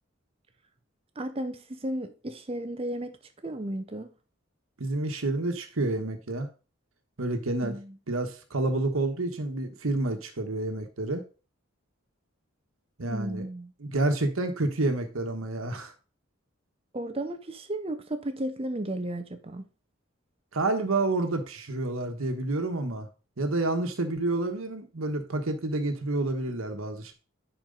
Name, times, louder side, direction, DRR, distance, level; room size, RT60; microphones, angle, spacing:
voice 1, 1.2-3.2 3.4-4.1 7.6-8.0 13.1-13.7 16.9-19.6, right 1 dB, 25° right, 0.7 m, -34 dB
voice 2, 4.8-6.5 7.2-7.7 8.1-11.2 13.0-13.5 13.8-15.9 20.5-23.1 23.4-27.1, right 2 dB, 80° right, 1.2 m, -29 dB
10.5 x 4.5 x 3.9 m
head